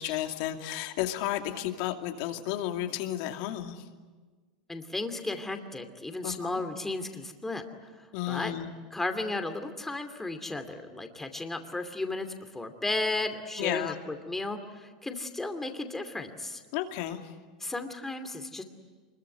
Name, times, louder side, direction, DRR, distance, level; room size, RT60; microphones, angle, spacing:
voice 1, 0.0-3.8 6.2-6.6 8.1-8.7 13.6-13.9 16.7-17.3, left 13 dB, 60° left, 5 dB, 2.5 m, -32 dB
voice 2, 4.7-7.9 8.3-8.5 8.9-16.6 17.6-18.6, left 2 dB, 10° left, 7 dB, 2.6 m, -34 dB
25.0 x 22.0 x 9.5 m, 1.4 s
supercardioid pair, 120°, 4 cm